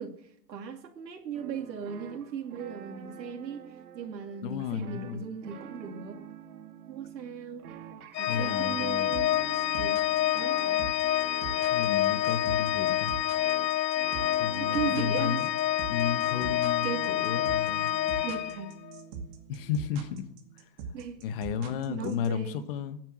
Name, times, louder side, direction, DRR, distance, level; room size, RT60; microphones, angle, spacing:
voice 1, 0.0-6.2 6.9-7.7 8.2-9.4 9.7-10.0 10.3-10.9 14.5-15.5 16.8-17.1 18.2-18.7 20.9-21.2 21.7-22.7, right 7 dB, 80° right, 2.5 m, -38 dB
sound 1, 1.3-20.6, right 8 dB, 60° right, 2.2 m, -47 dB
voice 2, 4.4-5.2 8.3-9.1 11.7-13.1 14.4-15.5 15.9-17.9 19.5-20.3 21.2-23.0, left 7 dB, 35° left, 1.1 m, -33 dB
Organ, 8.1-19.0, left 13 dB, 90° left, 0.8 m, -28 dB
sound 2, 9.1-22.3, right 5 dB, 30° right, 2.2 m, -41 dB
21.0 x 9.2 x 6.3 m
hypercardioid pair, 150°, 50 cm